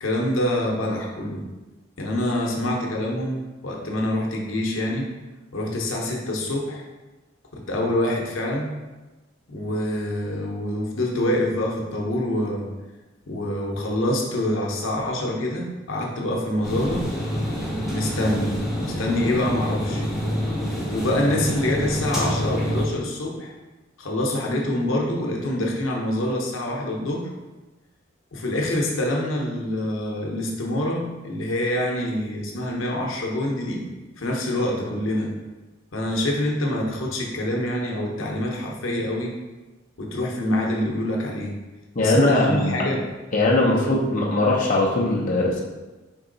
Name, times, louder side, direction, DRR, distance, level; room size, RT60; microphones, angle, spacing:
voice 1, 0.0-1.5 2.0-5.1 5.5-6.9 7.5-8.8 9.5-12.7 13.3-17.1 17.9-20.0 20.9-23.5 24.0-27.3 28.3-33.8 34.2-35.3 35.9-39.3 40.0-41.5 42.0-43.0 43.9-44.0, left 1 dB, 85° left, -1 dB, 0.8 m, -26 dB
sound 1, 16.6-22.8, equal, ahead, 0.9 m, -27 dB
voice 2, 41.9-42.9 43.3-45.6, left 2 dB, 40° left, -3 dB, 0.7 m, -20 dB
4.6 x 2.9 x 3.9 m, 1.2 s
head